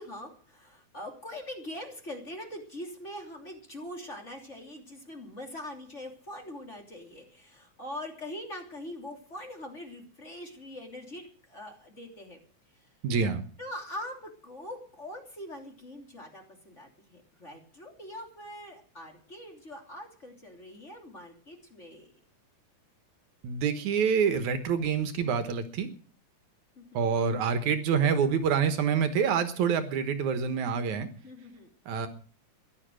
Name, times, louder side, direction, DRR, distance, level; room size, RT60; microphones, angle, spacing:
voice 1, 0.0-12.4 13.6-22.1 26.8-27.1 31.2-32.1, left 1 dB, 25° left, 2 dB, 3.1 m, -43 dB
voice 2, 13.0-13.4 23.4-25.9 26.9-31.1 31.9-32.1, right 6 dB, 75° right, 9 dB, 2.6 m, -27 dB
15.5 x 11.5 x 6.3 m, 0.44 s
omnidirectional pair, 3.5 m